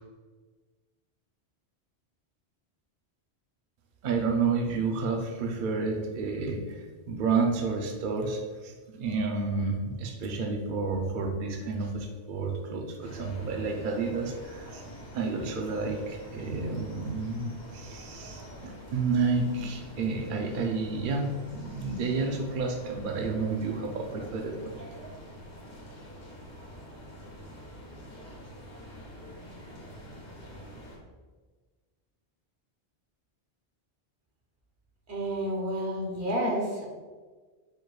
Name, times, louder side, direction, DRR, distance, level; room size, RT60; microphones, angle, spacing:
voice 1, 4.0-14.8 15.1-24.7, right 4 dB, 55° right, 1 dB, 0.6 m, -30 dB
sound 1, 13.0-31.0, equal, 85° left, 1.4 m, -46 dB
voice 2, 35.1-36.9, equal, 75° right, -1 dB, 1.3 m, -30 dB
4.6 x 2.3 x 4.6 m, 1.4 s
omnidirectional pair, 1.1 m